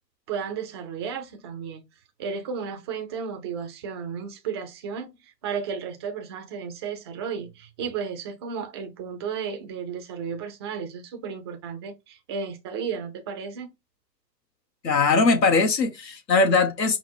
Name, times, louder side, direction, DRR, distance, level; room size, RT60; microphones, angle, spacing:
voice 1, 0.3-1.8 2.2-13.7, right 6 dB, 20° right, 0.3 m, -33 dB
voice 2, 14.8-17.0, left 4 dB, 80° left, 1.1 m, -20 dB
5.0 x 2.0 x 4.3 m
figure-of-eight pair, 105°, 49 cm